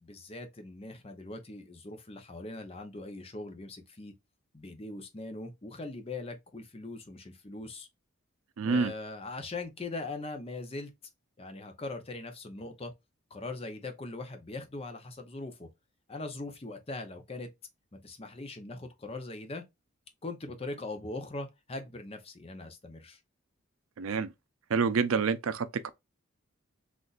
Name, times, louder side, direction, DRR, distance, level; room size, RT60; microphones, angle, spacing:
voice 1, 0.0-4.1 4.5-7.9 8.6-10.9 11.4-12.9 13.3-15.7 16.1-17.5 17.9-19.6 20.2-23.2, left 2 dB, 25° left, 0.6 m, -41 dB
voice 2, 8.6-8.9 24.0-24.3 24.7-25.9, right 5 dB, 75° right, 0.5 m, -27 dB
3.9 x 2.5 x 2.3 m
head